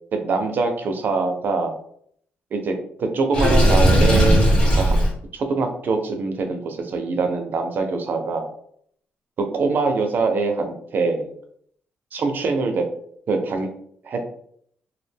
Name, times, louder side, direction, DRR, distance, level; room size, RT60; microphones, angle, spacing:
voice 1, 0.1-1.8 2.5-4.5 4.8-5.0 5.3-8.5 9.4-11.3 12.1-12.8 13.3-13.7 14.0-14.3, right 4 dB, 55° right, 5 dB, 0.5 m, -23 dB
Water / Sink (filling or washing), 3.3-5.1, equal, 30° left, 1.0 m, -16 dB
2.3 x 2.1 x 3.4 m, 0.64 s
cardioid pair, 105°, 4 cm